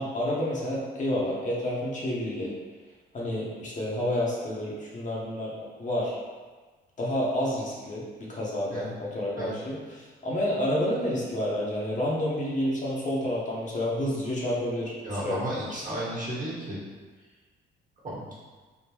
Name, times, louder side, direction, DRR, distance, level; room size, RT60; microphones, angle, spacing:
voice 1, 0.0-2.5 3.1-5.5 5.8-6.2 7.0-8.0 8.3-15.4, left 1 dB, 40° left, -5 dB, 0.9 m, -29 dB
voice 2, 15.0-16.8 18.0-18.3, right 1 dB, 40° right, -7 dB, 1.4 m, -33 dB
3.5 x 2.5 x 2.9 m, 1.4 s
cardioid pair, 90°, 20 cm